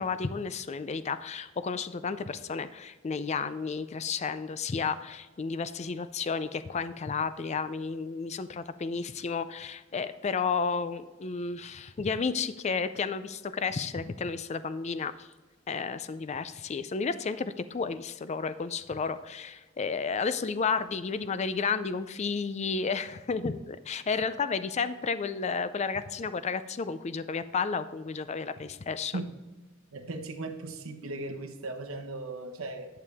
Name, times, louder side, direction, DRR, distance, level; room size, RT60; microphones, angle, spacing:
voice 1, 0.0-15.3 15.7-29.2, left 5 dB, 30° left, 13 dB, 0.4 m, -32 dB
voice 2, 29.9-32.9, right 2 dB, 85° right, 3 dB, 1.2 m, -37 dB
11.0 x 6.9 x 3.5 m, 1.2 s
head